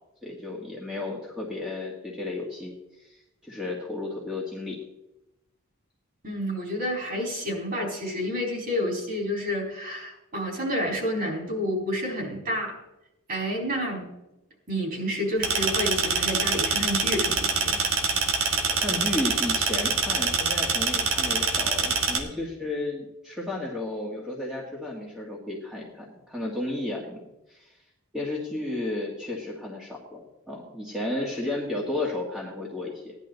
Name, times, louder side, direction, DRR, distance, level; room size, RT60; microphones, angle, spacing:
voice 1, 0.2-4.8 18.7-27.2 27.5-27.7 28.1-30.2 30.5-33.1, left 2 dB, 5° right, -3 dB, 1.8 m, -33 dB
voice 2, 6.2-12.7 13.3-14.1 14.7-17.8, equal, 40° right, -1 dB, 4.4 m, -29 dB
sound 1, 15.4-22.2, right 4 dB, 65° right, 1.8 m, -25 dB
17.0 x 11.0 x 4.0 m, 0.94 s
head